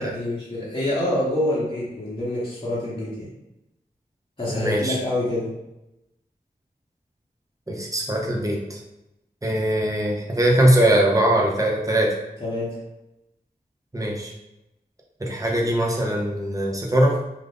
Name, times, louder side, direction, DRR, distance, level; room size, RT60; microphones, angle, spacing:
voice 1, 0.0-3.3 4.4-5.5 12.4-12.8, left 1 dB, 30° left, -7 dB, 0.9 m, -26 dB
voice 2, 4.5-5.0 7.7-8.8 9.4-12.1 13.9-14.3 15.2-17.2, right 1 dB, 20° right, -2 dB, 0.8 m, -21 dB
2.5 x 2.5 x 3.5 m, 0.91 s
wide cardioid pair, 50°, 16 cm